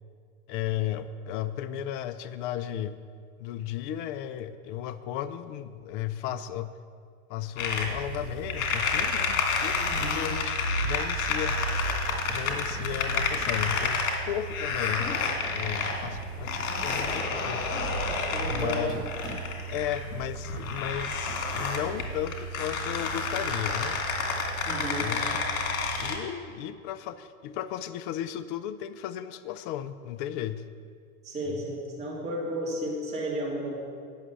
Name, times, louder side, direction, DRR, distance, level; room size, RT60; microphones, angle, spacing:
voice 1, 0.5-3.0 3.4-6.7 7.3-10.5 10.8-11.6 12.3-15.2 15.5-17.7 18.5-19.0 19.7-23.9 24.9-25.4 26.0-30.7 31.5-31.6, left 11 dB, 40° left, 12 dB, 0.4 m, -34 dB
sound 1, 7.6-26.2, left 3 dB, 70° left, 1.9 m, -30 dB
voice 2, 9.9-10.2 16.5-16.9 18.3-18.9 24.7-25.1 31.2-33.8, right 1 dB, 15° right, -6 dB, 2.4 m, -33 dB
Knock, 12.1-13.8 15.0-16.3 16.9-19.8 20.3-22.1, equal, 10° left, 1.9 m, -45 dB
8.9 x 6.2 x 6.9 m, 2.2 s
hypercardioid pair, 120°, 42 cm